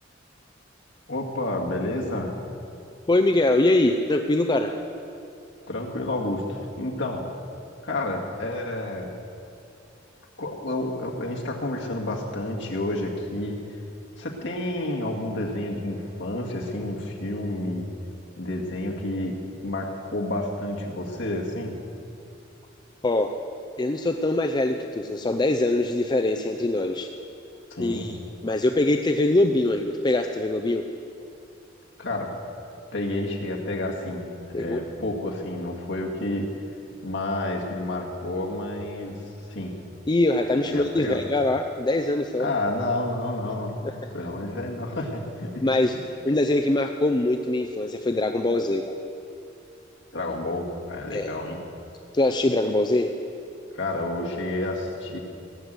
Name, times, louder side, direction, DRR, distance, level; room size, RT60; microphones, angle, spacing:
voice 1, 1.1-2.3 5.7-7.2 7.8-9.1 10.4-13.6 14.2-17.9 18.4-19.4 19.6-21.7 27.7-28.1 32.0-32.3 32.9-36.5 37.0-39.2 39.5-39.7 40.7-41.2 42.4-45.6 50.1-51.6 53.7-55.2, left 1 dB, 70° left, -2 dB, 2.1 m, -30 dB
voice 2, 3.1-4.7 23.0-23.4 23.8-27.1 27.8-28.2 28.4-30.8 34.5-34.8 40.1-42.5 43.8-43.9 45.6-45.9 46.2-48.9 51.1-51.3 52.1-53.1, left 2 dB, 25° left, 6 dB, 0.5 m, -23 dB
18.0 x 7.7 x 8.1 m, 2.6 s
head